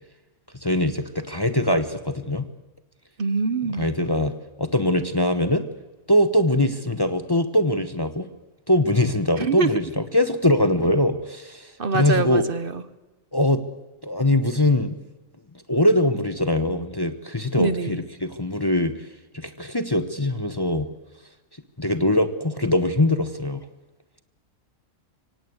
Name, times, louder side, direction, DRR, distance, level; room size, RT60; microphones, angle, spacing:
voice 1, 0.6-2.5 3.8-4.3 4.6-5.7 6.1-8.3 8.7-12.4 13.3-13.6 14.0-15.0 15.7-19.0 19.3-20.9 21.8-23.6, left 1 dB, 20° left, 9 dB, 1.1 m, -22 dB
voice 2, 3.2-3.9 9.4-9.7 11.8-12.8 17.6-18.0, right 3 dB, 45° right, 14 dB, 1.1 m, -24 dB
24.5 x 17.5 x 8.0 m, 1.1 s
omnidirectional pair, 1.4 m